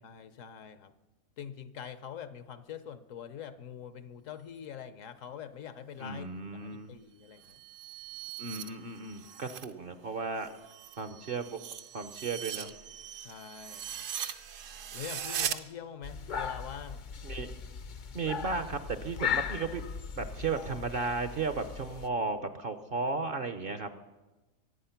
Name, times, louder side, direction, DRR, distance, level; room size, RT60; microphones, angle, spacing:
voice 1, 0.0-0.9 1.4-7.6 13.2-14.0 14.9-17.0, left 8 dB, 65° left, 12 dB, 1.1 m, -44 dB
voice 2, 6.0-6.9 8.4-10.5 11.0-11.6 11.9-12.7 17.2-17.6 18.1-19.8 20.2-23.9, right 4 dB, 50° right, 10 dB, 0.7 m, -34 dB
sound 1, 7.3-9.7 10.1-15.6, right 9 dB, 65° right, 1.1 m, -40 dB
sound 2, 16.0-22.1, left 7 dB, 50° left, 0.6 m, -38 dB
23.5 x 8.5 x 5.8 m, 1.1 s
omnidirectional pair, 1.5 m